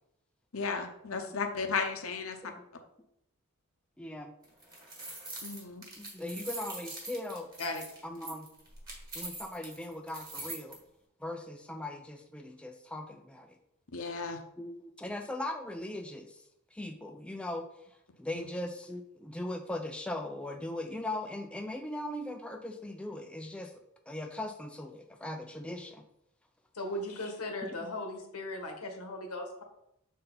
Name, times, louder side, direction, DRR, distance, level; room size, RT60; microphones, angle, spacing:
voice 1, 0.5-2.5 5.4-5.8 13.9-14.4 18.3-18.5, left 4 dB, 65° left, 5 dB, 0.8 m, -34 dB
voice 2, 4.0-4.3 6.0-7.5 8.0-8.5 9.1-10.8 11.2-13.6 14.6-23.7 24.1-26.0 27.6-27.9, left 1 dB, 5° left, 4 dB, 0.4 m, -39 dB
sound 1, 4.4-10.8, right 2 dB, 15° right, 1.5 m, -43 dB
voice 3, 26.7-29.6, left 1 dB, 90° left, 3 dB, 1.4 m, -37 dB
6.5 x 4.3 x 3.9 m, 0.78 s
head